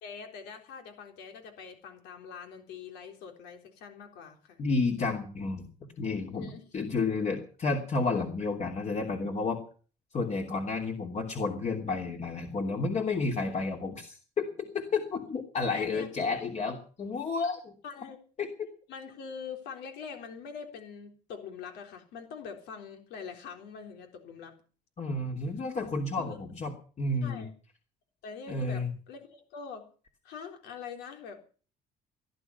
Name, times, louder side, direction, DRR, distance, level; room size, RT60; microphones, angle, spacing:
voice 1, 0.0-4.6 6.3-6.6 15.7-16.1 16.4-16.5 17.8-18.2 18.9-24.5 26.2-26.4 27.2-27.5 28.2-29.8 30.2-31.4, left 6 dB, 85° left, 5 dB, 3.8 m, -44 dB
voice 2, 4.6-5.7 6.0-9.6 10.1-17.7 18.4-18.5 25.0-27.5 28.5-28.9, left 3 dB, 40° left, 2 dB, 3.0 m, -31 dB
17.5 x 11.5 x 6.9 m, 0.40 s
cardioid pair, 110°, 17 cm